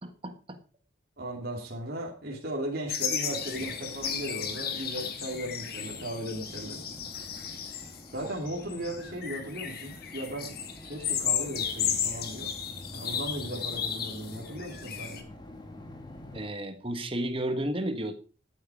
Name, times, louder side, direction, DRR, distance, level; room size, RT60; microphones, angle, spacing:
voice 1, 0.0-0.6 16.3-18.1, right 1 dB, 25° right, 8 dB, 1.5 m, -32 dB
voice 2, 1.2-6.8 8.1-10.6 10.8-12.5 12.9-15.2, right 1 dB, 50° right, -1 dB, 3.0 m, -37 dB
sound 1, 2.9-15.2, left 8 dB, 50° left, 1.6 m, -34 dB
sound 2, 3.3-16.5, left 1 dB, 20° left, 1.7 m, -47 dB
13.0 x 8.9 x 5.0 m, 0.37 s
head